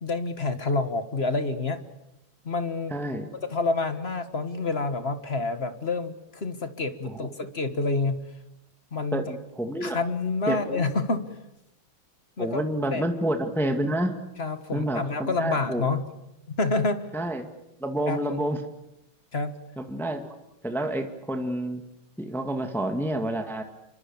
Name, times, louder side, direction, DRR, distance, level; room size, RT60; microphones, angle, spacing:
voice 1, 0.0-1.8 2.5-2.9 3.4-8.2 8.9-9.2 9.8-11.3 12.4-12.6 12.9-13.0 14.4-16.0 16.6-17.1 18.1-18.4 19.3-19.5, left 3 dB, 30° left, 10 dB, 1.7 m, -28 dB
voice 2, 2.9-3.3 7.0-7.3 9.1-10.0 10.5-10.9 12.4-14.2 14.7-15.9 17.1-17.5 17.8-18.6 19.8-20.3 20.6-21.8 22.2-23.6, right 1 dB, ahead, 5 dB, 1.8 m, -29 dB
28.0 x 24.5 x 7.3 m, 0.87 s
omnidirectional pair, 2.2 m